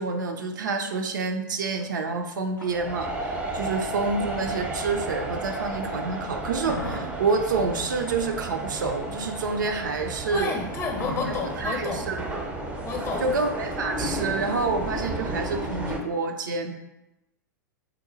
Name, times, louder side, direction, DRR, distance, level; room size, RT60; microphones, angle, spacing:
voice 1, 0.0-10.5 11.6-12.4 13.2-16.7, right 4 dB, 75° right, 5 dB, 0.4 m, -28 dB
sound 1, 1.8-5.9 6.3-14.2, left 1 dB, 90° left, 0.5 m, -42 dB
sound 2, 2.7-16.0, right 1 dB, 10° right, 0.4 m, -33 dB
voice 2, 10.3-12.1 12.8-13.3, left 3 dB, 25° left, 2 dB, 0.7 m, -30 dB
2.8 x 2.1 x 3.8 m, 0.93 s
hypercardioid pair, 100°, 10 cm